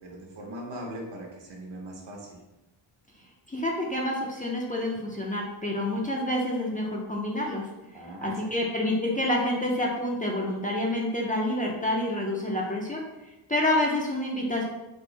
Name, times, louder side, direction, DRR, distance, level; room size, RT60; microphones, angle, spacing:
voice 1, 0.0-2.4 7.9-8.6, right 1 dB, 65° right, -1 dB, 1.1 m, -40 dB
voice 2, 3.5-13.0 13.5-14.6, left 1 dB, 20° left, -3 dB, 0.5 m, -28 dB
3.6 x 2.5 x 3.9 m, 1.0 s
wide cardioid pair, 125°, 47 cm